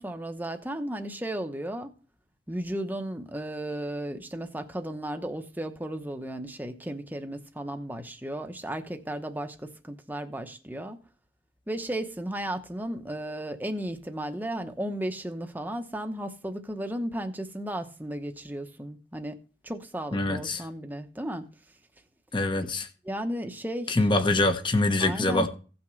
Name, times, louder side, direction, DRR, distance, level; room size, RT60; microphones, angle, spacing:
voice 1, 0.0-1.9 2.5-11.0 11.7-21.5 23.0-24.0 25.0-25.5, right 1 dB, 10° right, 0.9 m, -34 dB
voice 2, 20.1-20.6 22.3-22.9 23.9-25.5, left 2 dB, 25° left, 1.1 m, -24 dB
16.5 x 6.0 x 3.2 m
head